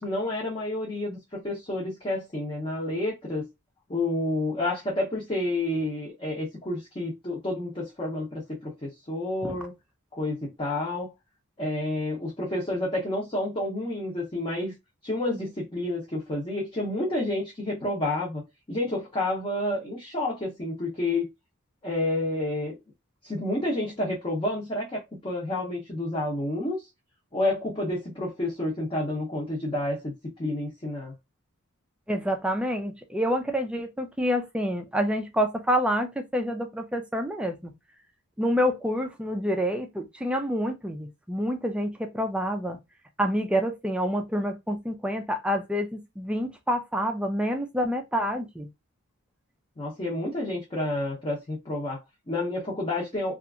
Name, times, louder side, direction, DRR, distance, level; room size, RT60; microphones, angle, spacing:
voice 1, 0.0-3.4 3.9-9.7 10.1-11.1 11.6-14.7 15.0-18.4 18.7-21.3 21.8-22.8 23.2-26.9 27.3-30.1 30.4-31.1 49.8-53.3, left 1 dB, 25° left, 0.7 m, -29 dB
voice 2, 32.1-37.7 38.4-42.8 43.2-48.7, equal, 5° right, 0.3 m, -27 dB
2.7 x 2.4 x 2.3 m
head